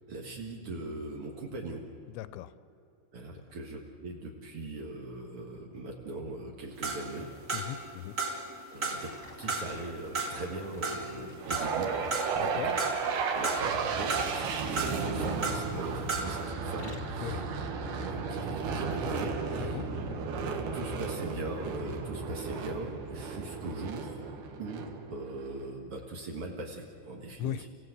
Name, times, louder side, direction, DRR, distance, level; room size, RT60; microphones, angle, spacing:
voice 1, 0.1-1.8 3.1-7.3 8.7-9.1 9.4-11.9 12.3-12.8 13.3-17.4 17.9-19.8 20.4-24.2 24.6-27.7, right 2 dB, 85° right, 0 dB, 1.2 m, -40 dB
voice 2, 2.1-2.5 7.5-8.2 12.4-12.7 17.2-17.4 19.6-19.9 27.4-27.7, left 12 dB, 85° left, 14 dB, 2.9 m, -37 dB
sound 1, 6.8-7.9 8.2-9.1 9.5-12.5 12.8-13.8 14.1-15.8 16.0-16.4, right 3 dB, 30° right, 1.9 m, -34 dB
sound 2, 9.0-13.7 14.5-16.3 16.6-17.2 17.8-18.0 18.7-18.8, left 1 dB, 35° left, 1.3 m, -51 dB
sound 3, 11.4-25.6, right 5 dB, 65° right, 3.2 m, -34 dB
27.5 x 16.0 x 8.0 m, 3.0 s
omnidirectional pair, 5.4 m